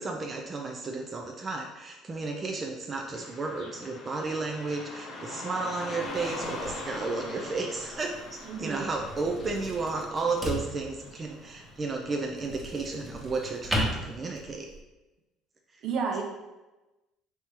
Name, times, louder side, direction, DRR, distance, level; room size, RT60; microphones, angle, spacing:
voice 1, 0.0-14.7, right 3 dB, 30° right, 2 dB, 0.5 m, -33 dB
Car passing by / Traffic noise roadway noise, 3.1-12.1, left 2 dB, 65° left, 1.1 m, -42 dB
sound 1, 6.1-14.8, equal, 15° right, 1.2 m, -37 dB
voice 2, 8.4-8.9 15.8-16.2, right 5 dB, 60° right, 2 dB, 0.8 m, -31 dB
4.4 x 2.9 x 3.6 m, 1.1 s
supercardioid pair, 95°, 0 cm